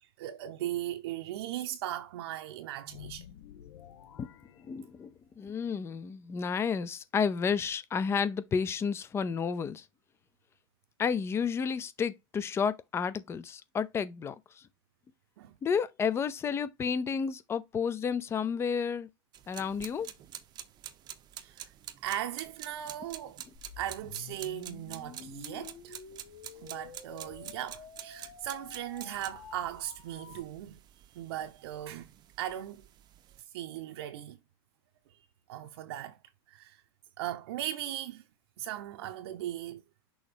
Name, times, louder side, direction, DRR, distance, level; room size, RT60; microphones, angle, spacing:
voice 1, 0.2-3.2 15.4-15.5 21.4-21.7 22.0-23.4 23.8-26.0 26.6-30.8 31.2-32.1 32.4-32.8 33.5-34.4 35.5-36.2 36.5-36.8 37.2-38.2 38.6-39.8, right 12 dB, 70° right, 0.8 m, -38 dB
sound 1, 2.8-5.4, left 11 dB, 70° left, 1.0 m, -51 dB
voice 2, 4.6-9.8 11.0-14.4 15.6-19.1 19.5-20.1, left 6 dB, 20° left, 0.6 m, -31 dB
sound 2, 19.3-33.4, right 11 dB, 30° right, 0.7 m, -48 dB
sound 3, 23.5-30.4, left 7 dB, 40° left, 1.6 m, -49 dB
6.3 x 3.0 x 5.0 m
supercardioid pair, 135°, 14 cm